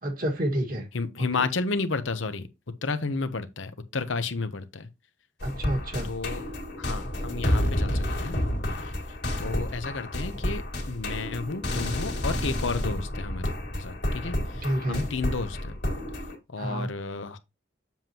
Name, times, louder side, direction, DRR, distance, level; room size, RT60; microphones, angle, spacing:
voice 1, 0.0-0.8 5.4-6.1 14.6-15.1 16.6-16.9, equal, 45° right, 1.8 m, -28 dB
voice 2, 0.9-2.5 2.8-4.9 6.0-6.4 6.8-8.4 8.8-8.9 9.4-15.8 16.5-17.4, left 3 dB, 80° left, 0.9 m, -32 dB
sound 1, 5.4-16.4, left 1 dB, 55° left, 2.3 m, -30 dB
7.6 x 7.4 x 2.9 m
head